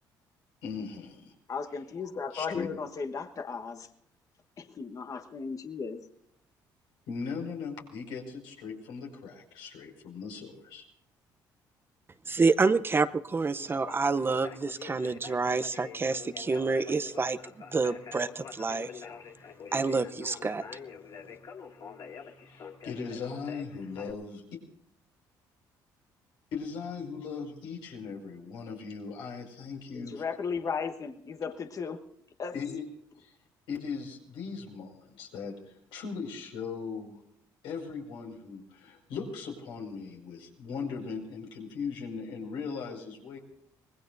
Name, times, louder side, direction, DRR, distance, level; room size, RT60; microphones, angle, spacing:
voice 1, 0.6-1.3 2.3-2.7 7.1-10.8 22.2-24.4 26.5-30.2 32.5-32.8 33.2-33.4 33.7-37.2 37.6-43.4, left 5 dB, 85° left, 0 dB, 5.5 m, -39 dB
voice 2, 1.5-3.9 4.6-6.0 29.9-32.0 32.4-32.6, left 5 dB, 45° left, 6 dB, 1.3 m, -35 dB
voice 3, 12.3-17.4 17.6-19.0 19.7-20.6, right 4 dB, 30° right, 12 dB, 0.7 m, -28 dB
Conversation, 13.6-24.1, left 6 dB, 60° left, 2.3 m, -46 dB
25.5 x 20.0 x 2.6 m, 0.73 s
cardioid pair, 85°, 8 cm